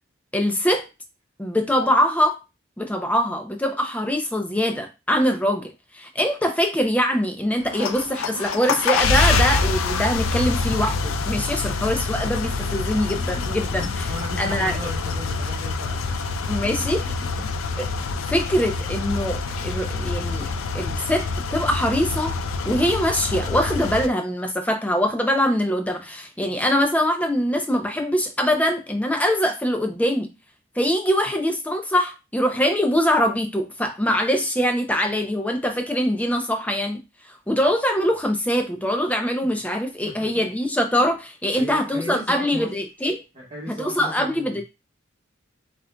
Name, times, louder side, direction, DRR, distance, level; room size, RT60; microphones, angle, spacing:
voice 1, 0.3-0.9 1.4-2.4 2.8-14.1 14.4-14.9 16.5-17.0 17.8-17.9 18.3-20.5 20.7-22.3 22.7-30.3 30.8-37.0 37.3-43.2 43.7-44.6, equal, 5° left, 0.5 m, -23 dB
sound 1, 7.6-24.1, left 4 dB, 75° left, 0.5 m, -26 dB
voice 2, 11.6-11.9 13.7-16.1 16.5-16.7 39.4-39.6 40.0-40.1 41.5-42.7 43.3-44.6, equal, 30° right, 1.4 m, -36 dB
7.3 x 2.5 x 2.2 m
head